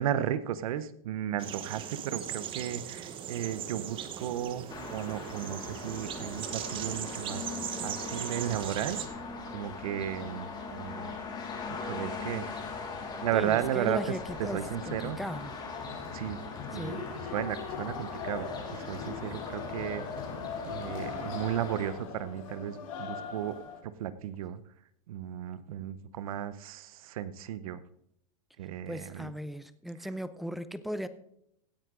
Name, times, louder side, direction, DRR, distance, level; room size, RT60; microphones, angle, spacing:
voice 1, 0.0-9.0 9.5-11.1 11.7-12.5 13.2-15.2 16.1-16.4 16.7-20.1 20.6-24.6 25.1-27.8 28.6-29.3, right 10 dB, 80° right, 15 dB, 0.9 m, -34 dB
sound 1, 1.4-9.1, right 9 dB, 30° right, 1.1 m, -39 dB
sound 2, 4.7-21.9, left 4 dB, 25° left, 2.5 m, -41 dB
voice 2, 13.3-15.5 16.7-17.1 28.9-31.1, equal, ahead, 14 dB, 0.5 m, -37 dB
sound 3, 14.3-23.8, left 5 dB, 70° left, 3.2 m, -40 dB
16.5 x 9.6 x 3.8 m, 0.75 s
supercardioid pair, 145°, 18 cm